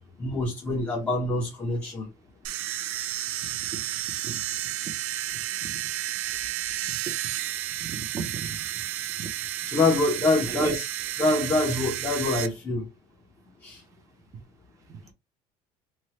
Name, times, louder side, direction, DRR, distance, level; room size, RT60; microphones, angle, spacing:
voice 1, 0.2-2.1 9.7-10.9 11.2-12.9 13.6-13.8, left 2 dB, 15° left, 0.6 m, -25 dB
sound 1, 2.4-12.5, right 13 dB, 70° right, 0.4 m, -32 dB
voice 2, 7.8-8.6 9.2-9.3 10.1-10.2 10.5-10.7 14.9-15.1, right 4 dB, 25° right, 0.6 m, -35 dB
3.2 x 2.1 x 2.9 m
cardioid pair, 180°, 12 cm